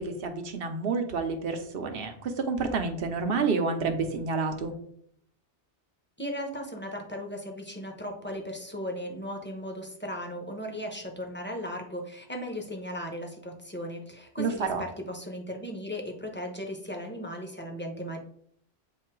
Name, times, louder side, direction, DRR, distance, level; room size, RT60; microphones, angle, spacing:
voice 1, 0.0-4.7 14.4-14.8, right 4 dB, 55° right, 5 dB, 1.0 m, -29 dB
voice 2, 6.2-18.2, equal, 10° left, 2 dB, 0.9 m, -37 dB
8.3 x 2.8 x 4.5 m, 0.66 s
omnidirectional pair, 1.2 m